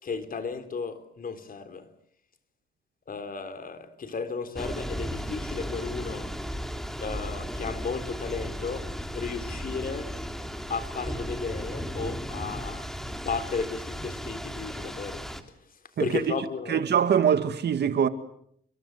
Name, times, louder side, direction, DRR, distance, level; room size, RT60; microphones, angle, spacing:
voice 1, 0.0-1.9 3.1-6.3 7.0-10.1 10.7-15.3 16.0-16.8, left 5 dB, 45° left, 3.9 m, -34 dB
Thunder / Rain, 4.6-15.4, equal, ahead, 3.2 m, -35 dB
voice 2, 16.7-18.1, right 8 dB, 55° right, 2.3 m, -23 dB
29.5 x 23.5 x 8.0 m
cardioid pair, 90°, 20 cm